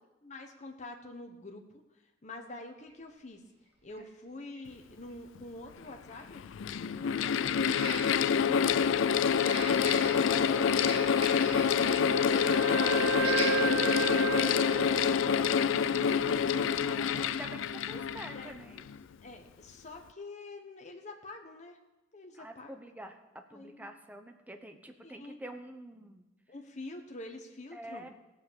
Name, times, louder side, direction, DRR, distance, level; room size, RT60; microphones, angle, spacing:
voice 1, 0.2-1.6 2.2-3.4 3.8-8.1 11.3-13.7 14.2-17.1 18.3-18.5 19.2-21.8 22.1-22.7 23.5-23.9 25.0-25.5 26.5-28.1, left 2 dB, 40° left, 3 dB, 1.3 m, -46 dB
sound 1, 2.9-3.0 4.0-4.1 4.5-4.6 7.6-8.4 9.3-12.1 12.4-12.6 13.2-13.5 14.1-14.2, right 2 dB, 35° right, 2.7 m, -40 dB
Mechanical fan, 5.4-5.5 6.3-19.0, left 7 dB, 75° left, 0.4 m, -27 dB
voice 2, 10.3-10.8 16.8-18.8 22.3-26.3 27.7-28.1, right 1 dB, 10° right, 5 dB, 1.0 m, -46 dB
Wind instrument woodwind instrument, 11.6-15.9, right 7 dB, 85° right, 0.4 m, -34 dB
16.0 x 6.7 x 7.1 m, 1.0 s
head